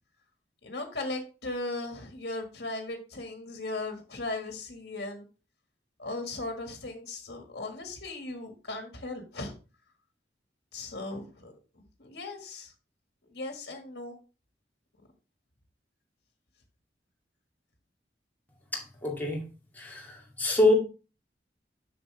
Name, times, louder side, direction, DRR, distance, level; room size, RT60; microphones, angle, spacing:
voice 1, 0.6-5.2 6.0-9.5 10.7-11.5 12.0-12.7 13.3-14.2, left 2 dB, 65° left, 4 dB, 1.7 m, -37 dB
voice 2, 18.7-19.4 19.7-20.7, left 2 dB, 10° left, -3 dB, 2.5 m, -26 dB
7.1 x 6.8 x 3.3 m, 0.32 s
head